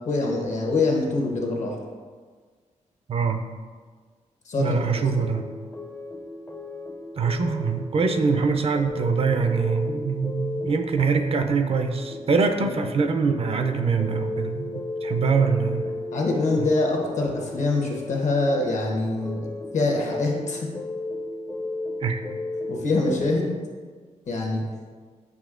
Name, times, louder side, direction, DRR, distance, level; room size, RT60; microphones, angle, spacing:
voice 1, 0.0-1.7 4.4-5.3 12.6-12.7 16.1-19.5 19.7-20.7 22.7-23.5 24.3-24.6, left 2 dB, 65° left, 0 dB, 0.9 m, -25 dB
voice 2, 3.1-3.4 4.6-5.5 7.2-15.9 16.6-16.7 22.0-22.2, right 5 dB, 50° right, 6 dB, 0.4 m, -24 dB
sound 1, 5.0-23.4, left 2 dB, 15° left, 0.4 m, -34 dB
7.0 x 2.8 x 2.4 m, 1.5 s
cardioid pair, 85°, 13 cm